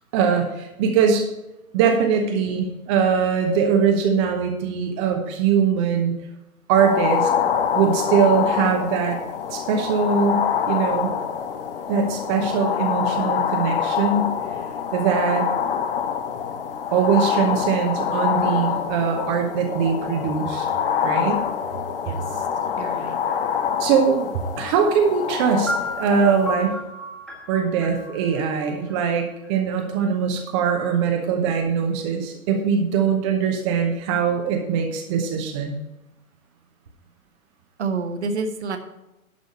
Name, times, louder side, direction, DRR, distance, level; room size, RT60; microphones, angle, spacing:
voice 1, 0.1-1.3 1.7-6.1 6.7-7.3 7.7-9.2 9.5-11.1 11.9-14.3 14.9-15.5 16.9-20.7 21.0-21.4 23.8-24.3 24.6-26.7 27.5-35.7, right 6 dB, 20° right, 3 dB, 0.9 m, -21 dB
sound 1, 6.7-26.6, left 8 dB, 40° left, 0.9 m, -26 dB
voice 2, 22.0-22.5 22.8-23.2 37.8-38.8, right 4 dB, 50° right, 7 dB, 1.3 m, -29 dB
sound 2, 25.7-29.5, equal, ahead, 1.4 m, -33 dB
11.5 x 5.2 x 6.5 m, 0.93 s
figure-of-eight pair, 120°, 42 cm